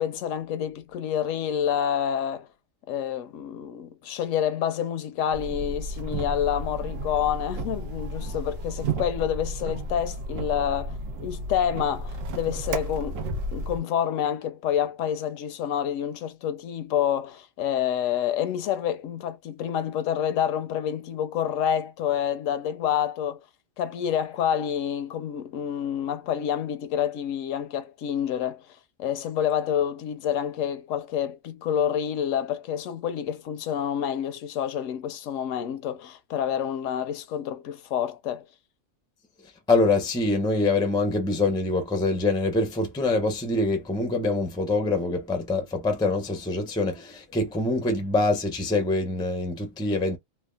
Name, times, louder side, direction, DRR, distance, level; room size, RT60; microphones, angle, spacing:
voice 1, 0.0-2.5 2.9-13.2 13.5-23.4 23.8-28.7 29.0-38.4, left 9 dB, 75° left, 0.9 m, -28 dB
sound 1, 5.3-13.8, right 1 dB, 75° right, 1.1 m, -33 dB
voice 2, 39.7-50.2, left 2 dB, 5° left, 0.3 m, -25 dB
3.4 x 2.1 x 2.2 m
omnidirectional pair, 1.4 m